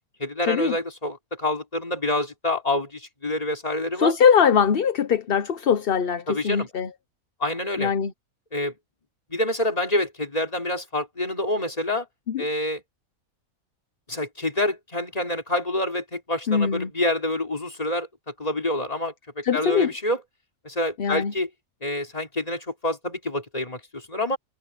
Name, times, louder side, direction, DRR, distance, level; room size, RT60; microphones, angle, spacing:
voice 1, 0.2-4.1 6.3-6.7 7.4-7.9 8.5-8.7 9.3-12.1 12.4-12.8 14.1-18.1 18.4-20.2 20.6-21.5 21.8-24.4, left 1 dB, 25° left, 3.2 m, -27 dB
voice 2, 3.9-6.9 7.8-8.1 12.3-12.4 16.5-16.9 19.4-19.9 21.0-21.3, left 7 dB, 50° left, 0.9 m, -21 dB
omnidirectional pair, 1.4 m